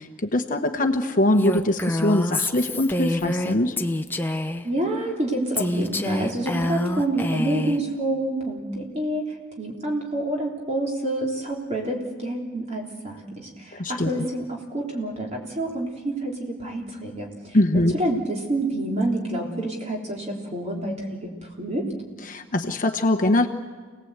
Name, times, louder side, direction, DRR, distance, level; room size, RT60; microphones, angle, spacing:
voice 1, 0.0-3.8 13.8-14.2 17.5-17.9 22.3-23.5, left 1 dB, 40° left, 6 dB, 1.1 m, -22 dB
Female speech woman speaking, 1.4-4.7 5.6-7.8, left 1 dB, 10° left, 0.8 m, -26 dB
voice 2, 4.6-21.8, right 1 dB, 30° right, -1 dB, 3.5 m, -28 dB
28.5 x 19.0 x 8.1 m, 1.5 s
head